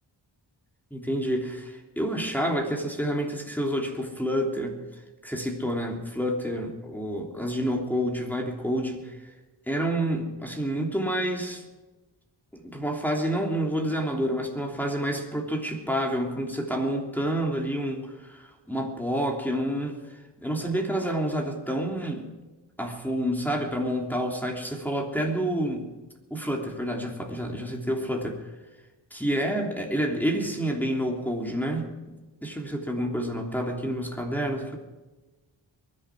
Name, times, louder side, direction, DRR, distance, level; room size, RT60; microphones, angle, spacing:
voice 1, 0.9-4.8 5.2-9.3 9.7-11.6 12.5-20.0 20.4-22.2 22.8-25.8 26.3-28.4 29.1-31.9 32.4-34.8, equal, 5° left, 0 dB, 3.2 m, -28 dB
23.0 x 11.0 x 4.8 m, 1.1 s
wide cardioid pair, 55°, 47 cm